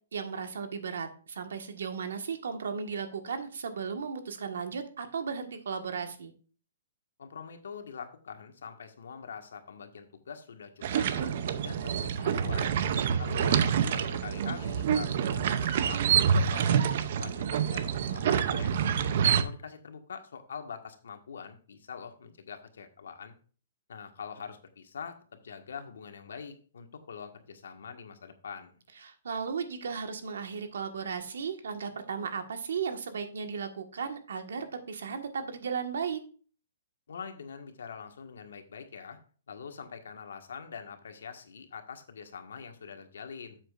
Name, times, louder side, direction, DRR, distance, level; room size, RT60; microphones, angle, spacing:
voice 1, 0.1-6.3 13.0-13.5 29.0-36.2, right 6 dB, 80° right, 6 dB, 1.5 m, -35 dB
voice 2, 7.2-11.3 11.6-12.7 13.2-15.2 15.5-16.1 16.3-18.7 19.3-23.3 23.9-28.8 37.1-39.2 39.5-43.6, left 6 dB, 90° left, 6 dB, 1.6 m, -44 dB
sound 1, 10.8-19.4, right 8 dB, 40° right, 0.6 m, -27 dB
10.0 x 7.6 x 2.5 m, 0.40 s
hypercardioid pair, 175°, 0 cm